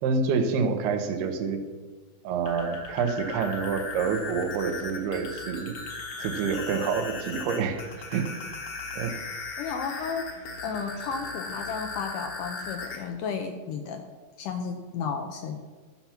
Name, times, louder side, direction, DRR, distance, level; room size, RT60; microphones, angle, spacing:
voice 1, 0.0-1.6 2.2-5.8 6.2-7.8 8.1-8.3 8.9-9.2, right 5 dB, 85° right, 6 dB, 2.9 m, -27 dB
sound 1, 2.3-13.0, left 4 dB, 55° left, 1.6 m, -37 dB
voice 2, 9.6-10.2 10.6-14.1 14.4-15.6, left 6 dB, 80° left, 6 dB, 1.9 m, -33 dB
12.5 x 5.7 x 5.8 m, 1.4 s
omnidirectional pair, 4.4 m